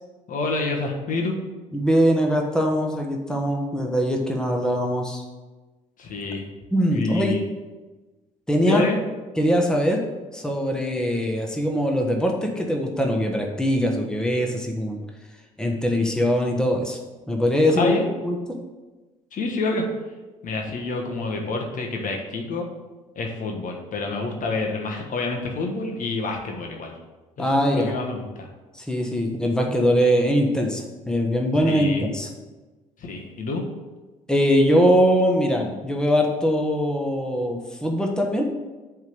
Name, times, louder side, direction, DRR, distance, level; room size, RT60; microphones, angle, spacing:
voice 1, 0.3-1.4 6.0-6.5 6.9-7.4 8.7-9.0 17.7-18.0 19.3-19.8 20.4-22.7 23.1-26.9 27.4-28.5 31.6-32.0 33.0-33.6, left 3 dB, 50° left, 1 dB, 1.3 m, -27 dB
voice 2, 1.7-5.2 6.7-7.4 8.5-8.9 9.4-10.0 10.3-15.0 15.6-17.0 17.3-18.0 18.2-18.4 27.4-27.9 28.8-32.3 34.3-38.4, equal, 5° left, 1 dB, 1.2 m, -22 dB
7.9 x 3.6 x 5.3 m, 1.2 s
hypercardioid pair, 50°, 17 cm